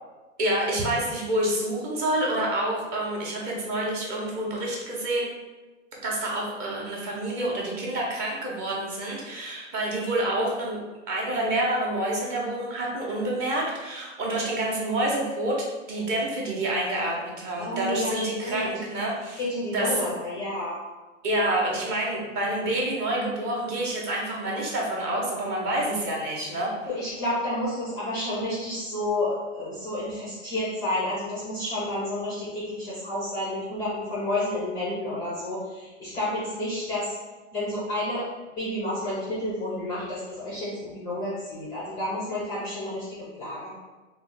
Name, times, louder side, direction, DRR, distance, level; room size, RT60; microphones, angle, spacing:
voice 1, 0.4-5.3 6.0-10.8 11.1-15.6 15.9-19.4 19.7-20.0 21.2-26.7, right 1 dB, 25° right, -3 dB, 0.6 m, -28 dB
voice 2, 17.6-18.7 19.4-20.8 26.9-37.1 37.5-38.2 38.6-43.8, left 1 dB, 10° left, -8 dB, 0.4 m, -30 dB
2.9 x 2.1 x 3.7 m, 1.2 s
hypercardioid pair, 145°, 38 cm